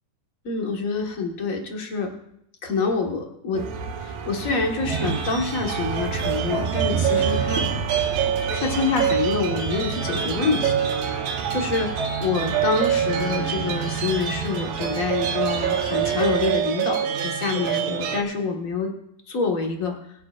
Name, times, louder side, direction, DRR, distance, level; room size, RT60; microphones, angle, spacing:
voice 1, 0.4-2.1 2.6-3.6 4.0-7.6 8.5-10.8 11.5-11.9 12.2-18.9 19.3-19.9, left 4 dB, 45° left, 2 dB, 1.1 m, -26 dB
sound 1, 3.5-16.6, right 5 dB, 85° right, 2.7 m, -32 dB
sound 2, 4.8-18.2, right 8 dB, 70° right, 2.5 m, -26 dB
21.5 x 9.6 x 2.5 m, 0.74 s
omnidirectional pair, 3.7 m